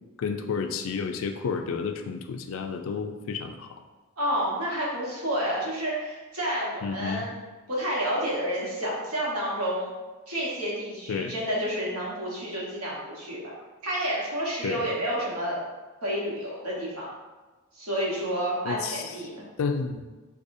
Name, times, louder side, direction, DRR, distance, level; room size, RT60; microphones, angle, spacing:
voice 1, 0.2-3.8 6.8-7.2 11.1-11.3 14.6-14.9 18.6-19.1 19.6-20.2, left 5 dB, 65° left, 6 dB, 0.3 m, -31 dB
voice 2, 4.2-7.4 7.7-9.9 10.3-13.5 13.8-15.6 16.0-17.1 17.7-19.4, equal, 90° right, -5 dB, 1.2 m, -30 dB
4.8 x 2.3 x 2.6 m, 1.2 s
head